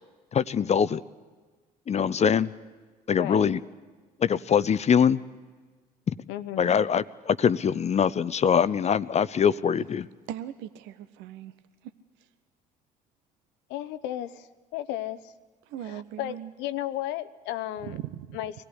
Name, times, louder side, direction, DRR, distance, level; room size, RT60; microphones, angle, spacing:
voice 1, 0.3-1.0 1.9-2.5 3.1-3.6 4.2-5.2 6.1-6.2 6.6-10.1, left 7 dB, 30° left, 16 dB, 0.6 m, -23 dB
voice 2, 3.2-3.5 6.3-6.7 13.7-15.3 15.8-18.0 18.3-18.5, left 13 dB, 60° left, 13 dB, 0.9 m, -34 dB
voice 3, 10.3-11.5 15.7-16.5 17.8-18.4, right 11 dB, 60° right, 12 dB, 0.9 m, -39 dB
24.5 x 17.5 x 9.9 m, 1.4 s
figure-of-eight pair, 50°, 21 cm